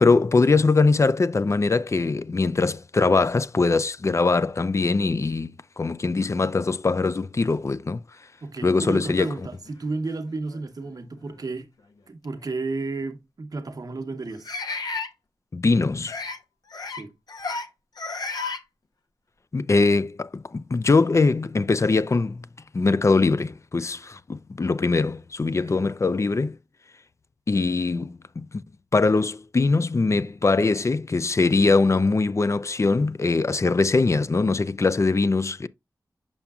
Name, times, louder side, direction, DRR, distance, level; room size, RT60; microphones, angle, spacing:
voice 1, 0.0-8.0 8.6-9.4 15.5-16.2 19.5-22.5 22.7-26.6 27.5-28.6 28.9-35.7, left 3 dB, 45° left, 0.5 m, -22 dB
voice 2, 8.4-11.7 12.1-14.5 16.9-17.1 25.6-25.9, right 3 dB, 65° right, 1.0 m, -32 dB
sound 1, 9.7-9.8 10.5-10.6 12.2-12.3 14.5-15.1 16.0-16.4 16.7-17.0 17.3-17.7 18.0-18.6, left 4 dB, 70° left, 0.8 m, -32 dB
7.0 x 5.8 x 2.3 m
cardioid pair, 45°, 7 cm